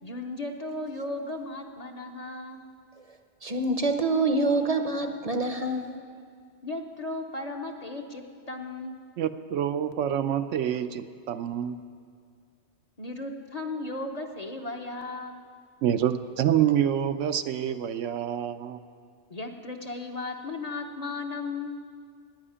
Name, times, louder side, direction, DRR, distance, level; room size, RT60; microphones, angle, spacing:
voice 1, 0.0-2.7 6.6-9.0 13.0-15.4 19.3-21.8, left 2 dB, 35° left, 3 dB, 0.8 m, -36 dB
voice 2, 3.4-6.0, right 2 dB, 35° right, 6 dB, 0.7 m, -26 dB
voice 3, 9.2-11.8 15.8-18.8, right 10 dB, 80° right, 10 dB, 0.9 m, -27 dB
10.5 x 9.3 x 9.9 m, 2.2 s
omnidirectional pair, 1.3 m